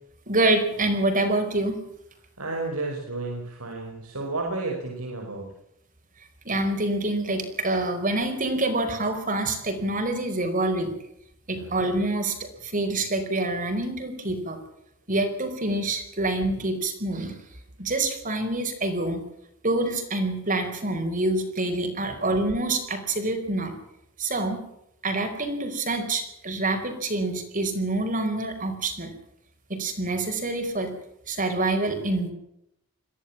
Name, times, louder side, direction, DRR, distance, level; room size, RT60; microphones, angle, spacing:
voice 1, 0.3-1.8 6.4-10.9 11.5-12.4 12.6-14.6 15.1-17.3 17.8-19.2 19.6-23.7 24.2-24.6 25.0-29.1 29.7-30.9 31.3-32.3, right 2 dB, 40° right, 5 dB, 4.7 m, -26 dB
voice 2, 2.4-5.5 11.5-11.7 22.1-22.2, right 2 dB, 90° right, 0 dB, 5.3 m, -32 dB
23.0 x 16.0 x 7.3 m, 0.79 s
head